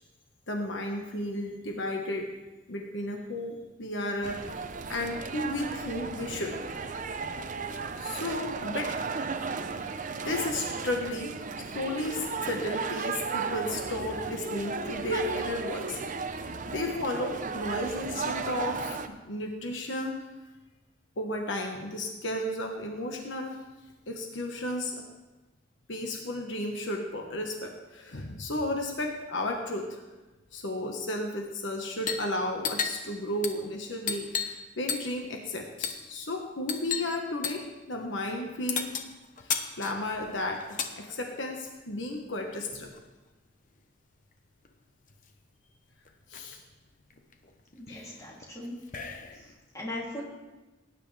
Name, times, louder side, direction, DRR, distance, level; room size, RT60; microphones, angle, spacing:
voice 1, 0.5-2.3 2.7-4.6 4.9-6.6 8.0-9.0 10.1-11.3 11.6-16.0 16.7-20.1 21.2-23.6 24.1-25.0 25.9-30.0 30.5-38.9 39.8-42.9 46.3-46.6 47.9-48.2, left 1 dB, 70° left, 2 dB, 1.4 m, -33 dB
sound 1, 4.2-19.1, right 4 dB, 40° right, 0.7 m, -35 dB
sound 2, 31.9-32.3 32.6-34.6 34.9-35.3 35.8-36.1 36.7-37.1 37.4-37.7 38.7-41.0 42.0-43.1 44.3-44.4 44.6-45.3 45.7-45.8 46.0-46.6 47.1-49.5, left 6 dB, 45° left, 0.9 m, -35 dB
voice 2, 47.7-48.8 49.3-50.2, left 1 dB, 15° left, -4 dB, 2.9 m, -39 dB
18.5 x 9.8 x 3.4 m, 1.1 s
head